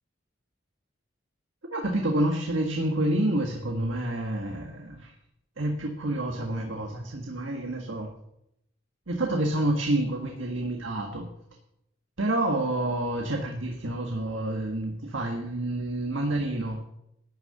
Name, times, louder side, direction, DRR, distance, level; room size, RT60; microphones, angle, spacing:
voice 1, 1.7-5.1 5.6-8.1 9.1-11.3 12.2-16.8, right 1 dB, 75° right, 2 dB, 1.8 m, -28 dB
12.5 x 6.8 x 9.1 m, 0.79 s
head